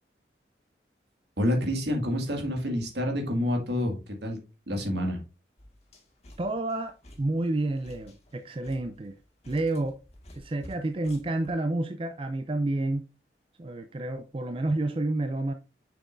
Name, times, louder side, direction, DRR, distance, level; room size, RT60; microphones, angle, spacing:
voice 1, 1.4-4.4 4.7-5.2, left 1 dB, 70° right, 2.1 m, -28 dB
sound 1, 5.6-11.5, equal, 35° left, 1.8 m, -51 dB
voice 2, 6.4-9.2 9.5-10.0 10.3-13.1 13.6-15.5, right 2 dB, 30° right, 0.4 m, -29 dB
6.8 x 6.0 x 2.6 m
head